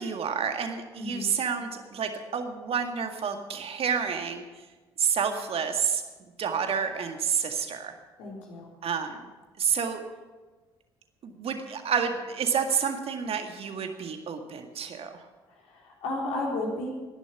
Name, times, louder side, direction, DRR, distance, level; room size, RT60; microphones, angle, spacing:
voice 1, 0.0-4.7 5.0-6.0 6.4-7.9 8.8-9.3 9.6-10.0 11.2-15.2, right 7 dB, 45° right, 6 dB, 1.9 m, -29 dB
voice 2, 1.0-1.3 8.2-8.7 15.5-16.9, left 2 dB, 60° left, -3 dB, 3.9 m, -33 dB
19.5 x 11.0 x 6.1 m, 1.3 s
figure-of-eight pair, 45°, 13 cm